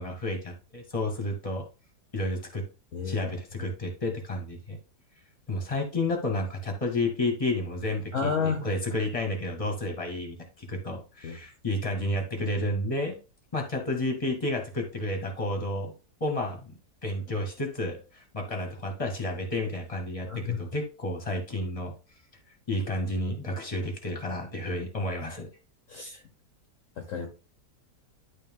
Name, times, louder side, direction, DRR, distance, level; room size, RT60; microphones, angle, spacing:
voice 1, 0.0-1.7 2.1-2.6 3.0-4.8 5.5-13.2 13.5-15.9 16.2-16.7 17.0-21.9 22.7-25.5, left 1 dB, 20° left, 3 dB, 2.1 m, -31 dB
voice 2, 2.9-3.3 8.1-8.6 11.2-11.4 20.3-20.6 25.9-26.2 27.0-27.3, left 5 dB, 55° left, 3 dB, 1.4 m, -30 dB
11.5 x 4.0 x 3.8 m, 0.33 s
omnidirectional pair, 1.8 m